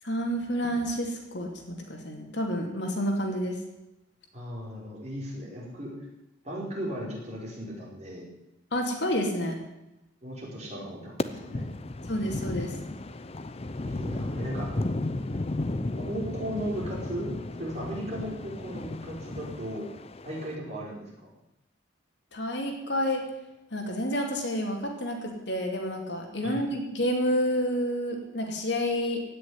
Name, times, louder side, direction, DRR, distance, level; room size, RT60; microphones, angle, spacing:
voice 1, 0.0-3.6 8.7-9.6 12.1-12.7 22.3-23.2 23.7-29.2, equal, 60° left, 1 dB, 2.8 m, -29 dB
voice 2, 4.3-5.9 6.4-8.3 10.2-11.7 13.8-14.7 16.0-17.3 17.6-19.9 20.2-21.3 26.4-26.6, equal, 35° right, -4 dB, 5.1 m, -36 dB
sound 1, 11.2-20.5, left 2 dB, 30° left, 0.6 m, -34 dB
16.5 x 6.7 x 9.7 m, 0.93 s
head